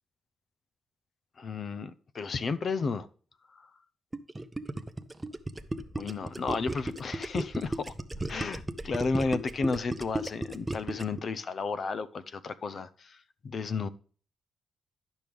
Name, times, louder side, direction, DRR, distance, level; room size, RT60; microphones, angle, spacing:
voice 1, 1.4-3.1 3.5-3.7 6.0-7.9 8.3-13.2 13.4-13.9, left 4 dB, 45° left, 0.6 m, -32 dB
Gurgling, 4.1-11.2, right 2 dB, 15° right, 0.6 m, -35 dB
10.5 x 6.1 x 3.4 m
cardioid pair, 120°, 0 cm